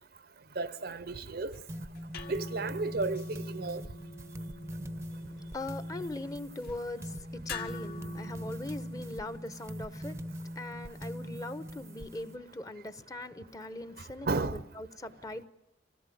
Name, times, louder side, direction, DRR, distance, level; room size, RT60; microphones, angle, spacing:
voice 1, 0.6-1.6 2.3-3.8 14.3-14.6, right 3 dB, 55° right, 0.8 m, -33 dB
sound 1, 1.3-9.4, left 3 dB, 55° left, 2.0 m, -48 dB
sound 2, 1.7-12.4, equal, 15° right, 0.8 m, -42 dB
voice 2, 5.1-15.5, left 2 dB, 20° left, 1.0 m, -41 dB
26.5 x 17.5 x 9.4 m
head